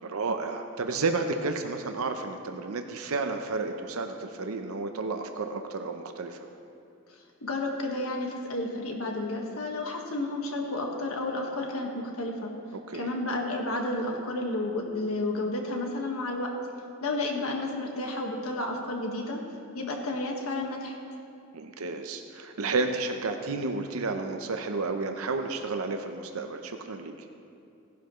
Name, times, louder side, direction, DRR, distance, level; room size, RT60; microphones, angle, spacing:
voice 1, 0.0-6.4 12.9-13.1 21.5-27.1, right 3 dB, 85° right, 6 dB, 0.7 m, -31 dB
voice 2, 7.1-12.5 12.9-16.5 17.0-19.4 19.7-20.9, left 2 dB, 90° left, 1 dB, 1.6 m, -31 dB
16.5 x 11.0 x 3.1 m, 2.5 s
head